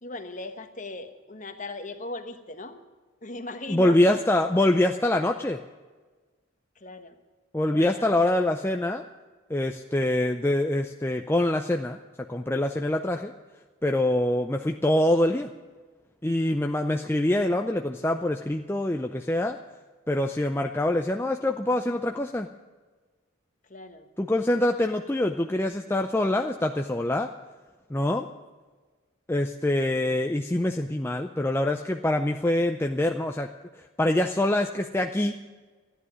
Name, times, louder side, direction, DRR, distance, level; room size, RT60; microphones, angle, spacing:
voice 1, 0.0-2.8 3.2-4.2 6.8-7.2 7.6-8.1 23.7-24.1, left 2 dB, 35° left, 7 dB, 1.2 m, -38 dB
voice 2, 3.7-5.6 7.5-9.0 9.5-12.0 12.3-13.3 13.8-15.5 16.2-19.6 20.1-22.5 24.2-27.3 27.9-28.3 29.3-33.5 34.0-35.4, left 1 dB, 10° left, 4 dB, 0.4 m, -25 dB
14.0 x 10.0 x 9.5 m, 1.4 s
head